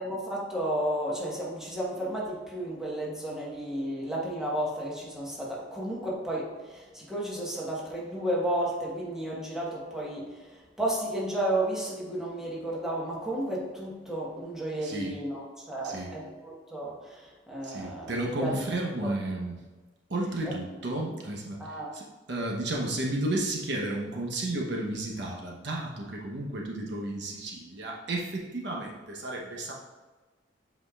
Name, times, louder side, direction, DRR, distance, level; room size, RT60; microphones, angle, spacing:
voice 1, 0.0-18.5 19.0-19.1 21.6-21.9, right 1 dB, 5° right, -5 dB, 1.3 m, -33 dB
voice 2, 14.8-15.2 15.8-16.1 17.6-19.6 20.1-29.7, right 1 dB, 65° right, -2 dB, 1.0 m, -33 dB
7.9 x 5.0 x 2.4 m, 1.3 s
head